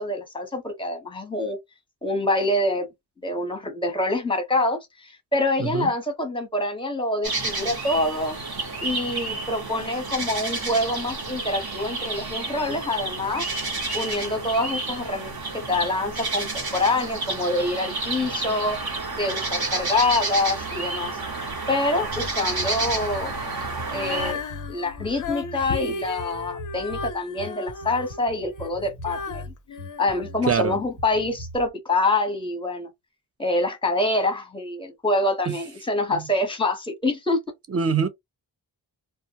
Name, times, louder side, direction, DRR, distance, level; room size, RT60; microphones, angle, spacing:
voice 1, 0.0-1.6 2.0-2.9 3.2-8.4 8.8-13.5 13.9-18.8 19.2-21.1 21.7-23.3 23.9-24.4 24.7-29.4 30.0-32.9 33.4-37.4, left 2 dB, 10° left, 0.8 m, -26 dB
sound 1, 7.2-24.3, right 3 dB, 50° right, 0.9 m, -30 dB
Bass guitar, 22.1-31.7, left 1 dB, 70° right, 1.4 m, -41 dB
Female singing, 23.9-30.9 31.5-31.6, left 4 dB, 40° left, 0.5 m, -35 dB
voice 2, 30.4-30.8 35.5-35.6 36.1-36.2 37.7-38.1, right 6 dB, 30° right, 0.5 m, -24 dB
2.2 x 2.1 x 2.7 m
cardioid pair, 65°, 49 cm